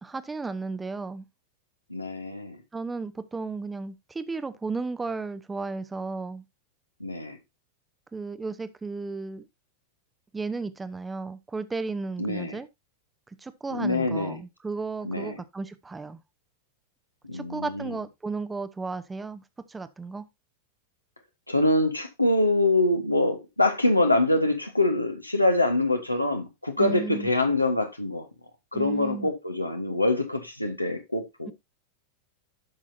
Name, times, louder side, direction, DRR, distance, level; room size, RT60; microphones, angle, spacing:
voice 1, 0.0-1.3 2.7-6.4 8.1-9.5 10.3-12.7 13.3-16.2 17.3-20.3 26.8-27.3 28.7-29.3, right 4 dB, 10° right, 0.8 m, -34 dB
voice 2, 1.9-2.6 7.0-7.4 12.2-12.6 13.7-14.4 15.0-15.4 17.2-17.9 21.5-28.3 28.7-31.5, left 2 dB, 85° left, 1.5 m, -25 dB
12.0 x 6.1 x 2.7 m
figure-of-eight pair, 90°, 0 cm